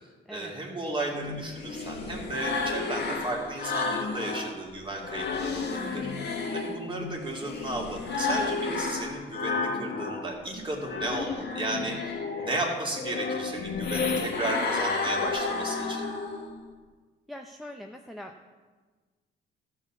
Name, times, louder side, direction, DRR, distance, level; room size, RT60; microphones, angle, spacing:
voice 1, 0.3-12.1 12.4-16.0, right 2 dB, 25° right, -1 dB, 2.7 m, -34 dB
sound 1, 1.1-4.5 4.9-10.3 10.7-16.5, left 4 dB, 60° left, 1.6 m, -31 dB
voice 2, 17.3-18.4, left 1 dB, ahead, 3 dB, 0.6 m, -42 dB
14.0 x 4.6 x 7.1 m, 1.4 s
cardioid pair, 90°, 20 cm